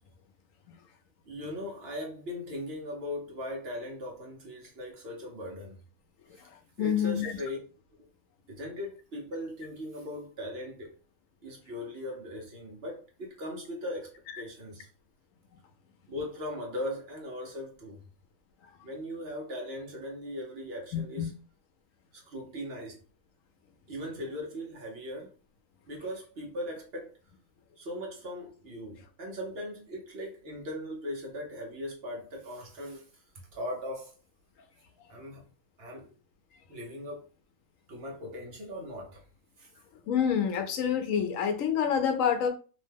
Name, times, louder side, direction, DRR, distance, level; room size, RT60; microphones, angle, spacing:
voice 1, 1.3-5.8 6.8-7.6 8.5-10.9 11.4-14.1 14.4-14.9 16.1-18.0 18.8-21.3 22.1-23.0 23.9-25.3 25.9-27.1 27.8-33.0 33.5-34.1 35.1-35.4 35.8-36.1 36.7-37.3 37.9-39.2 39.6-39.7, left 1 dB, 55° right, 0.9 m, -39 dB
voice 2, 6.8-7.3 14.3-14.4 20.9-21.3 40.1-42.5, left 8 dB, 75° left, 1.0 m, -27 dB
2.8 x 2.1 x 3.3 m
omnidirectional pair, 1.4 m